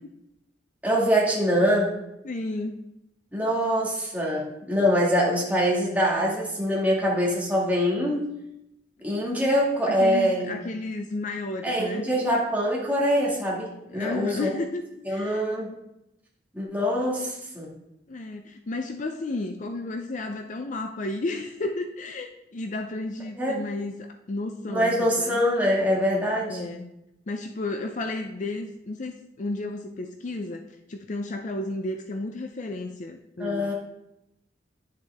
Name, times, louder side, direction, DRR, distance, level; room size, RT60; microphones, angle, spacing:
voice 1, 0.8-1.9 3.3-8.3 9.0-10.6 11.6-14.5 15.1-15.7 16.5-17.7 23.4-23.6 24.7-26.7 33.4-33.7, equal, 10° right, -5 dB, 2.0 m, -24 dB
voice 2, 2.2-2.8 9.9-12.1 13.9-15.4 18.1-25.4 26.5-26.8 27.3-30.6 30.9-33.7, left 2 dB, 40° left, 6 dB, 0.5 m, -33 dB
10.5 x 6.5 x 3.5 m, 0.86 s
head